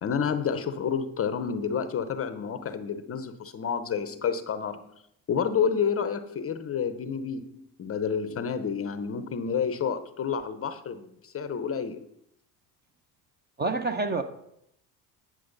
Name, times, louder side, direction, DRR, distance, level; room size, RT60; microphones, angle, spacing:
voice 1, 0.0-4.9 5.3-12.0, left 6 dB, 30° left, 11 dB, 0.6 m, -29 dB
voice 2, 13.6-14.2, right 3 dB, 20° right, 9 dB, 0.7 m, -27 dB
9.5 x 6.2 x 3.9 m, 0.76 s
hypercardioid pair, 75°, 47 cm